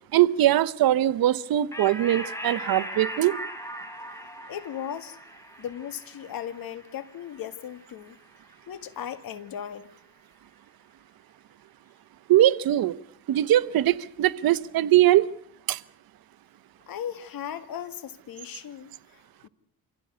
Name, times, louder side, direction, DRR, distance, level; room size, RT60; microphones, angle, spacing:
voice 1, 0.1-3.4 12.3-12.9 13.3-15.3 15.7-15.8, right 13 dB, 85° right, 0.9 m, -21 dB
sound 1, 1.7-8.6, equal, 10° left, 4.3 m, -39 dB
voice 2, 4.5-5.2 5.6-8.2 8.7-9.9 16.9-18.9 19.4-19.5, left 9 dB, 80° left, 1.9 m, -37 dB
25.5 x 16.5 x 8.0 m
cardioid pair, 90°, 35 cm